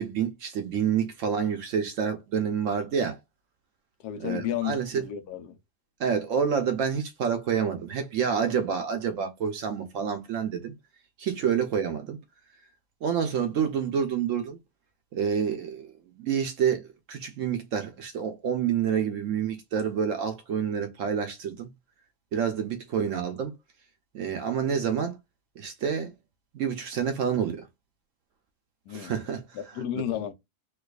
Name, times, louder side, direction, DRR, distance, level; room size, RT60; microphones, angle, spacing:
voice 1, 0.0-3.2 4.2-5.0 6.0-10.7 11.2-12.2 13.0-14.6 15.1-21.7 22.3-23.5 24.1-25.2 25.6-26.1 26.5-27.7 28.9-29.4 29.9-30.0, right 7 dB, 65° right, 0.8 m, -28 dB
voice 2, 4.0-5.6 28.9-29.2 29.5-30.3, left 11 dB, 85° left, 1.2 m, -32 dB
4.5 x 2.3 x 2.3 m
omnidirectional pair, 1.7 m